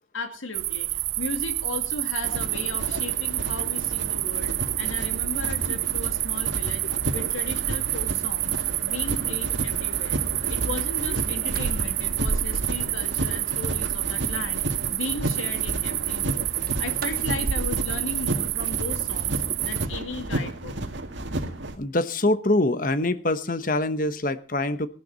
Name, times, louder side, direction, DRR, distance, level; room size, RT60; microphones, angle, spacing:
voice 1, 0.1-6.8 7.1-10.2 10.5-16.5 16.8-20.8, left 3 dB, 85° left, 6 dB, 2.2 m, -36 dB
sound 1, 0.5-19.9, right 17 dB, 90° right, 0.6 m, -28 dB
sound 2, 2.2-21.8, right 1 dB, 65° right, 2.1 m, -32 dB
sound 3, 11.5-13.0 13.4-14.2 16.5-19.3, right 3 dB, 45° right, 0.6 m, -34 dB
voice 2, 21.8-24.9, left 2 dB, 45° left, 12 dB, 1.1 m, -24 dB
16.5 x 12.0 x 4.0 m, 0.37 s
head